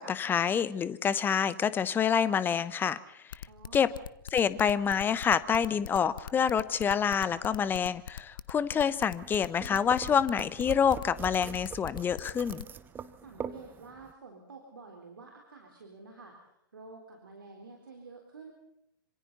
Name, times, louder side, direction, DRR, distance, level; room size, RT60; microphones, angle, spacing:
voice 1, 0.0-3.0 3.7-3.9 4.3-12.6, left 7 dB, 15° left, 16 dB, 1.0 m, -27 dB
sound 1, 3.3-12.6, left 8 dB, 65° left, 0.9 m, -41 dB
voice 2, 3.5-3.9 13.2-18.5, right 3 dB, 75° right, 2 dB, 4.1 m, -50 dB
sound 2, 9.0-14.1, right 7 dB, 15° right, 1.1 m, -43 dB
27.0 x 26.5 x 4.1 m, 0.80 s
figure-of-eight pair, 105°, 12 cm